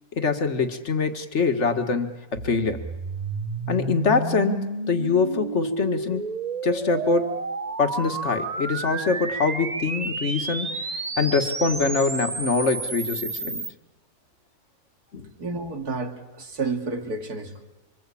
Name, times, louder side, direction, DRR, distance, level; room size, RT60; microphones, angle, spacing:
voice 1, 0.1-2.8 3.7-6.3 6.6-7.3 7.8-10.9 11.2-13.7 15.1-15.3, left 4 dB, 50° left, 7 dB, 2.1 m, -24 dB
sound 1, 2.3-13.7, right 3 dB, 30° right, 1.3 m, -31 dB
voice 2, 15.4-17.6, right 3 dB, 90° right, 4 dB, 3.1 m, -30 dB
27.0 x 26.0 x 8.6 m, 1.1 s
omnidirectional pair, 1.6 m